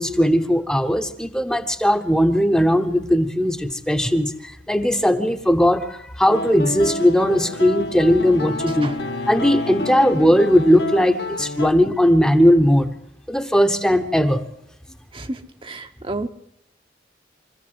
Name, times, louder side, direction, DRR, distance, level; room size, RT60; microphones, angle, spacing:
voice 1, 0.0-9.0 9.3-12.9 13.3-14.5, equal, 5° left, 8 dB, 1.0 m, -18 dB
Bowed string instrument, 6.3-10.1, left 5 dB, 80° left, 2.3 m, -36 dB
sound 1, 6.3-11.7, left 1 dB, 65° left, 1.5 m, -30 dB
voice 2, 8.7-9.0 15.1-16.3, right 2 dB, 30° right, 6 dB, 0.9 m, -31 dB
24.0 x 14.5 x 7.9 m, 0.75 s
head